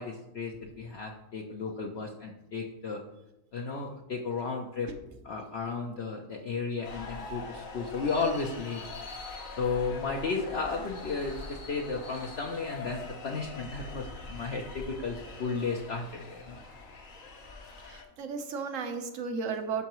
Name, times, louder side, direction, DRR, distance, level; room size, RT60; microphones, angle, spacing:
voice 1, 0.0-3.0 3.5-4.9 5.2-8.8 9.6-16.6, left 4 dB, 55° left, 0 dB, 0.9 m, -34 dB
sound 1, 6.8-18.0, left 3 dB, 75° left, 1.5 m, -43 dB
voice 2, 17.9-19.8, right 5 dB, 70° right, 7 dB, 1.2 m, -34 dB
12.5 x 5.6 x 3.0 m, 0.93 s
omnidirectional pair, 1.4 m